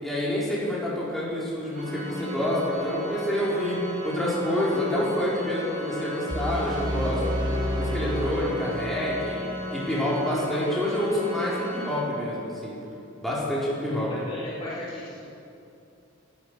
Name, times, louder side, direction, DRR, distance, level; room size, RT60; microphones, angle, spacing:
voice 1, 0.0-3.8 4.0-7.2 7.8-9.4 9.7-12.7 13.2-14.1, left 1 dB, ahead, -8 dB, 4.2 m, -27 dB
Organ, 1.7-12.5, equal, 35° right, 3.7 m, -35 dB
sound 1, 6.3-9.3, equal, 20° right, 1.2 m, -30 dB
voice 2, 13.9-15.3, left 1 dB, 25° left, -8 dB, 2.3 m, -37 dB
17.5 x 12.0 x 6.1 m, 2.7 s
head